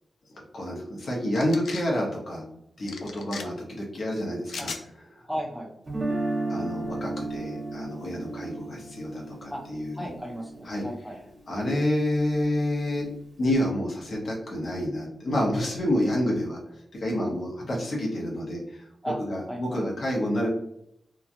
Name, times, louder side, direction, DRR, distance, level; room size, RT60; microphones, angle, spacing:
voice 1, 0.3-2.4 2.8-4.7 5.1-5.2 6.5-10.0 10.6-10.9 11.5-13.1 13.4-18.8 19.3-20.5, left 1 dB, 55° left, -2 dB, 0.8 m, -28 dB
sound 1, 1.4-1.9 2.9-3.4 4.5-4.8, left 4 dB, 80° left, 0.4 m, -37 dB
voice 2, 5.2-5.7 9.5-9.6 9.9-11.2 19.0-19.2 19.5-19.8, equal, ahead, -4 dB, 0.9 m, -34 dB
Guitar, 5.9-11.9, right 2 dB, 40° right, 1.1 m, -34 dB
2.9 x 2.3 x 2.5 m, 0.75 s
wide cardioid pair, 110°, 0 cm